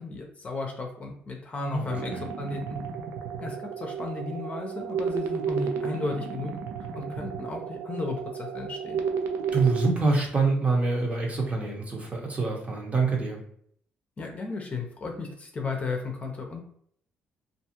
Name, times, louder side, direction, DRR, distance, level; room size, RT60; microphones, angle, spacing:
voice 1, 0.0-2.8 3.4-6.5 6.9-9.0 14.2-16.7, left 3 dB, 35° left, 2 dB, 0.6 m, -34 dB
voice 2, 1.7-2.2 9.5-13.4, right 3 dB, 35° right, 0 dB, 0.9 m, -26 dB
sound 1, 1.9-9.9, right 6 dB, 90° right, 0.3 m, -32 dB
2.5 x 2.3 x 2.8 m, 0.64 s
cardioid pair, 90°, 4 cm